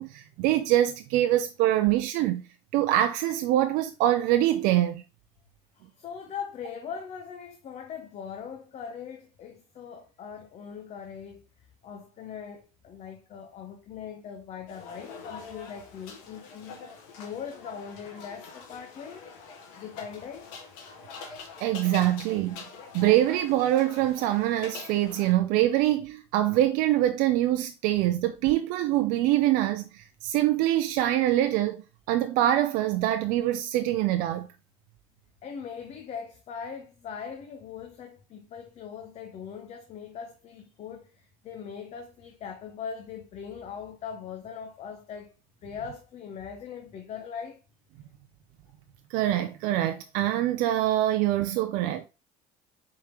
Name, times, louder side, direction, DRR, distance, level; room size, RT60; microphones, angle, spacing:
voice 1, 0.0-2.4 2.7-5.0 21.6-22.6 22.9-34.5 49.1-52.1, right 13 dB, 75° right, 0.4 m, -24 dB
voice 2, 5.7-11.4 11.8-16.8 17.2-19.3 19.8-20.5 35.4-45.3 45.6-47.6, left 7 dB, 50° left, 0.7 m, -40 dB
sound 1, 14.7-25.3, left 5 dB, 80° left, 1.1 m, -45 dB
4.5 x 3.6 x 2.9 m
supercardioid pair, 90°, 14 cm